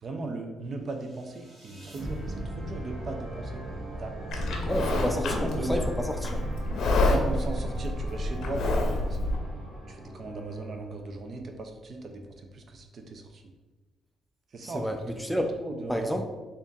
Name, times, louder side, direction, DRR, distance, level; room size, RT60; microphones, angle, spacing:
voice 1, 0.0-3.6 4.0-5.8 7.0-9.2 9.9-13.4 14.5-14.9 15.3-16.2, right 2 dB, 50° right, 4 dB, 0.5 m, -37 dB
sound 1, 1.0-11.2, right 1 dB, 25° right, 1.3 m, -39 dB
Livestock farm animals working animals, 4.3-9.4, left 2 dB, 70° left, 0.6 m, -28 dB
voice 2, 4.7-6.4 14.6-15.5 15.9-16.2, equal, 5° left, 4 dB, 0.3 m, -30 dB
3.4 x 2.5 x 3.9 m, 1.2 s
cardioid pair, 90°, 0 cm